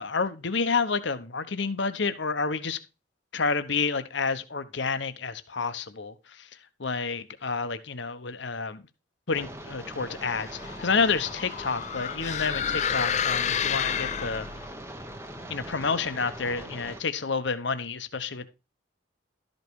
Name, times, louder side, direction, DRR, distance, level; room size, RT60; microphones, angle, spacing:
voice 1, 0.0-2.8 3.3-6.5 6.8-8.8 9.3-14.5 15.5-18.5, left 4 dB, 65° left, 0.9 m, -29 dB
sound 1, 9.3-17.0, right 1 dB, 15° right, 0.9 m, -41 dB
sound 2, 10.2-14.7, left 8 dB, 35° left, 0.5 m, -30 dB
12.5 x 5.3 x 4.7 m
head